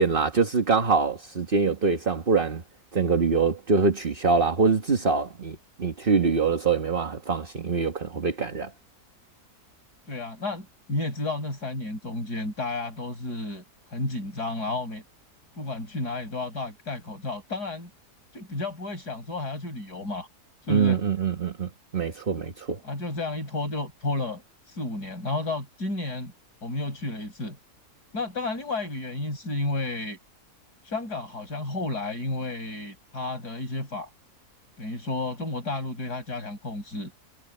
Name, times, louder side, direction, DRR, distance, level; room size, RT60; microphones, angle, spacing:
voice 1, 0.0-2.6 2.9-8.7 20.7-22.8, right 5 dB, 35° right, 1.7 m, -24 dB
voice 2, 10.1-15.0 15.6-17.9 18.3-20.3 20.6-21.0 22.8-26.3 26.6-27.6 28.1-30.2 30.8-34.1 34.8-37.1, left 2 dB, 80° left, 7.3 m, -32 dB
omnidirectional pair, 1.7 m